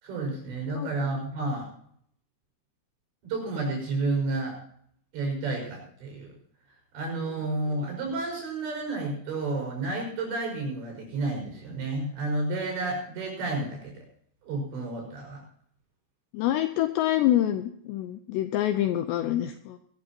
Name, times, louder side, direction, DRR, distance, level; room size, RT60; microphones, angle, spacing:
voice 1, 0.0-1.7 3.2-4.6 5.1-6.3 6.9-14.1 14.5-15.4, right 2 dB, 60° right, 0 dB, 7.8 m, -31 dB
voice 2, 16.3-19.8, left 13 dB, 80° left, 9 dB, 2.5 m, -26 dB
22.0 x 13.5 x 2.9 m, 0.66 s
omnidirectional pair, 5.7 m